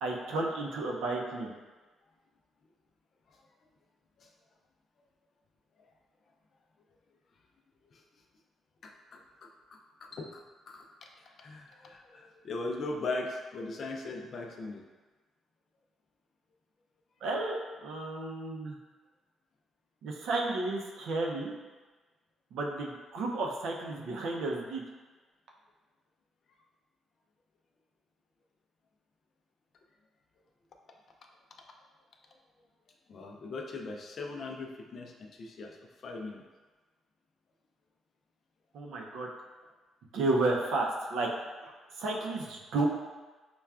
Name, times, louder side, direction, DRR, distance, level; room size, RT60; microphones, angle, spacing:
voice 1, 0.0-1.5 17.2-18.8 20.0-21.5 22.5-24.8 38.7-39.3 40.1-41.3 42.0-42.9, right 2 dB, 80° right, -1 dB, 0.5 m, -32 dB
voice 2, 8.8-10.4 10.7-10.9 11.2-14.8 33.1-35.8 36.0-36.4, left 3 dB, 45° left, 2 dB, 0.4 m, -39 dB
5.5 x 2.3 x 2.3 m, 1.3 s
cardioid pair, 145°, 0 cm